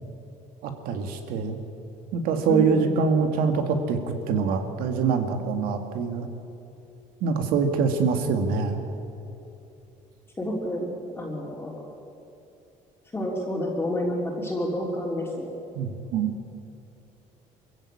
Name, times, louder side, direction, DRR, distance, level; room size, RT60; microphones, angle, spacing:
voice 1, 0.6-1.6 2.1-6.3 7.2-8.8 15.8-16.3, right 5 dB, 90° right, 6 dB, 2.3 m, -25 dB
voice 2, 2.5-3.1 10.4-11.8 13.1-15.5, equal, 15° left, -4 dB, 3.4 m, -29 dB
23.5 x 15.5 x 8.7 m, 2.8 s
cardioid pair, 125°, 14 cm